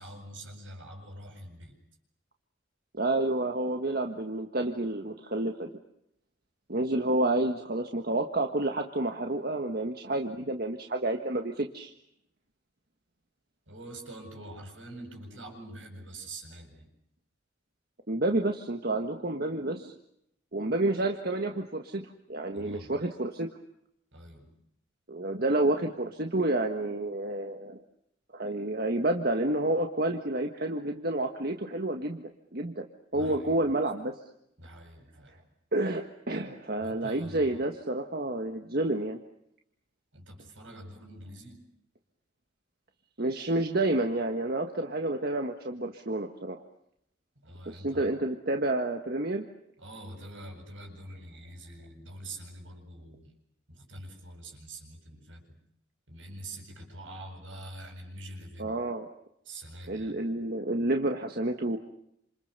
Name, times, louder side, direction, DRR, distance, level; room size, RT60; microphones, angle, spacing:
voice 1, 0.0-1.7 13.7-16.9 22.5-22.9 24.1-24.5 33.1-33.7 34.6-35.4 36.8-37.6 40.1-41.6 47.4-48.1 49.8-53.3 53.7-55.6 56.1-58.8 59.4-60.2, right 1 dB, 75° right, 3 dB, 8.0 m, -45 dB
voice 2, 2.9-5.7 6.7-11.9 18.1-19.9 20.5-23.5 25.1-27.8 28.3-32.2 32.5-32.8 33.1-34.1 35.7-39.2 43.2-46.6 47.6-49.4 58.6-59.1 59.9-61.8, right 2 dB, 50° right, 4 dB, 1.7 m, -29 dB
29.0 x 27.5 x 6.8 m, 0.76 s
head